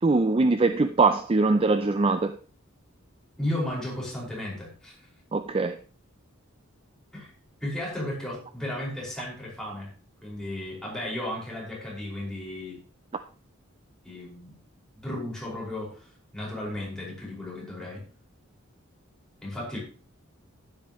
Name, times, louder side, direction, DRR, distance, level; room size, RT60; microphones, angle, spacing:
voice 1, 0.0-2.4 5.3-5.8, right 3 dB, 25° right, 0.4 m, -22 dB
voice 2, 3.4-4.9 7.1-7.3 7.6-9.9 10.2-12.8 14.0-14.5 15.0-16.1 16.3-18.0 19.4-19.8, left 1 dB, 5° left, 5.4 m, -34 dB
11.5 x 10.5 x 3.1 m
head